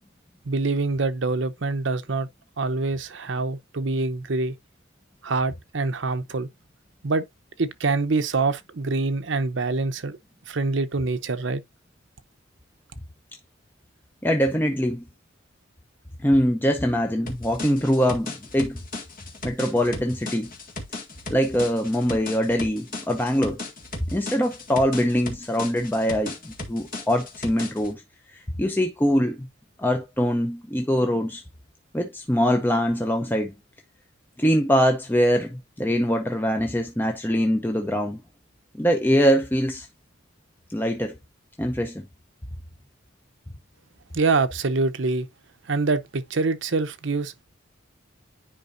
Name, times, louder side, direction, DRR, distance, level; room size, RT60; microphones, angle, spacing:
voice 1, 0.5-2.3 2.6-4.5 5.2-6.5 7.0-7.2 7.6-10.2 10.5-11.6 44.1-45.3 45.7-47.4, right 3 dB, 70° right, 0.7 m, -25 dB
voice 2, 14.2-15.0 16.2-18.8 19.4-20.5 21.3-23.6 24.1-28.0 28.3-29.5 29.8-31.4 31.9-33.5 34.4-38.2 38.7-39.9 40.7-41.2 41.6-42.1, equal, 10° left, 0.7 m, -23 dB
sound 1, 17.3-27.9, left 2 dB, 45° left, 1.8 m, -36 dB
9.9 x 4.9 x 2.5 m
head